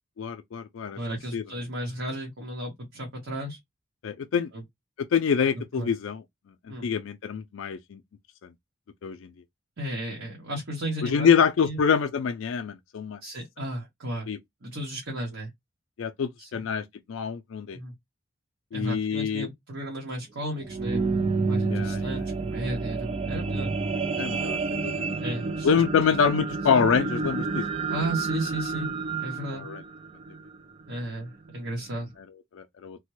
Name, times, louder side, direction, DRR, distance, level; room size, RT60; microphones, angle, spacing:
voice 1, 0.2-1.0 1.3-1.4 4.0-4.5 5.0-6.2 6.8-8.0 9.0-9.3 11.0-13.2 14.3-14.4 16.0-17.8 18.7-19.5 21.7-22.1 24.2-25.1 25.6-27.6 29.5-29.8 32.5-33.0, left 6 dB, 75° left, 0.4 m, -26 dB
voice 2, 0.9-3.6 4.5-4.6 5.4-5.9 6.7-6.9 9.8-11.3 11.6-11.8 13.2-14.3 14.6-15.5 16.4-16.6 17.7-17.9 18.7-21.0 21.5-23.7 25.2-25.7 26.1-26.2 27.9-28.9 29.2-29.6 30.9-32.1, right 1 dB, 75° right, 1.1 m, -34 dB
sound 1, 20.5-30.9 31.5-31.6, right 4 dB, 30° right, 0.3 m, -29 dB
3.3 x 2.1 x 3.0 m
head